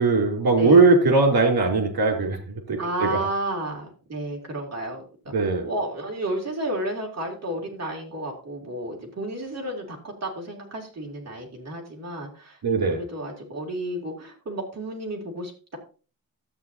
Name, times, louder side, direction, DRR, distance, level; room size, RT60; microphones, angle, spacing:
voice 1, 0.0-3.2 5.3-5.7 12.6-13.0, right 3 dB, 80° right, 3 dB, 3.2 m, -20 dB
voice 2, 2.8-5.3 5.6-15.8, right 1 dB, 45° right, -1 dB, 2.9 m, -32 dB
12.5 x 8.3 x 2.8 m, 0.35 s
wide cardioid pair, 175°, 36 cm